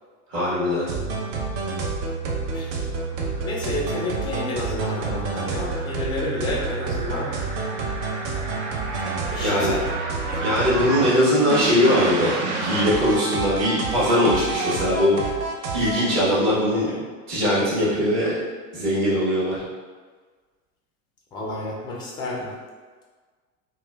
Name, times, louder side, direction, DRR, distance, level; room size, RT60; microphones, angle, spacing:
voice 1, 0.3-0.8 9.4-9.8 10.4-12.3 12.6-15.2 15.7-16.9 17.3-18.3 18.7-19.5, equal, 45° right, -8 dB, 1.4 m, -21 dB
sound 1, 0.9-16.1, right 3 dB, 60° right, 0.6 m, -28 dB
voice 2, 3.4-7.3 9.3-9.8 10.2-10.4 16.7-17.0 21.3-22.5, left 2 dB, 10° left, -3 dB, 0.3 m, -30 dB
3.0 x 2.3 x 2.2 m, 1.5 s
figure-of-eight pair, 75°, 43 cm